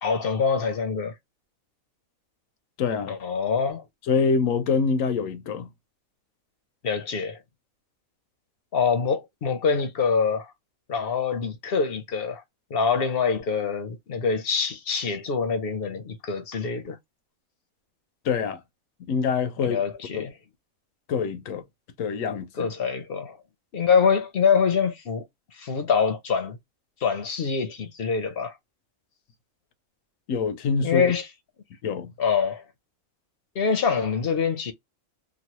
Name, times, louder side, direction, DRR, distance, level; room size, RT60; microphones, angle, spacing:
voice 1, 0.0-1.1 3.1-3.8 6.8-7.4 8.7-10.5 10.9-12.4 12.7-17.0 19.6-20.3 22.6-23.4 23.7-25.3 25.5-26.6 27.0-28.5 30.8-31.2 32.2-32.6 33.6-34.7, left 6 dB, 55° left, 0.8 m, -25 dB
voice 2, 2.8-3.1 4.1-5.7 18.2-18.6 19.1-19.8 20.1-20.3 21.1-21.6 22.0-22.7 30.3-31.0 31.8-32.1, left 5 dB, 75° left, 1.0 m, -25 dB
3.0 x 2.3 x 2.9 m
omnidirectional pair, 1.4 m